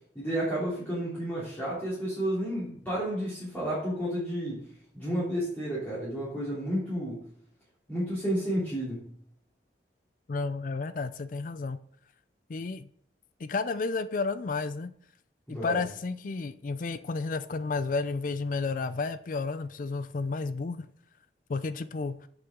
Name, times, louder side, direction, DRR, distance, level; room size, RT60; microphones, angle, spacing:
voice 1, 0.1-4.6 4.9-7.2 7.9-9.1 15.5-15.8, right 1 dB, 10° left, 3.2 m, -31 dB
voice 2, 10.3-11.8 12.5-12.8 13.4-14.9 15.5-20.9 21.5-22.3, left 4 dB, 45° left, 0.4 m, -32 dB
9.0 x 6.8 x 3.7 m
head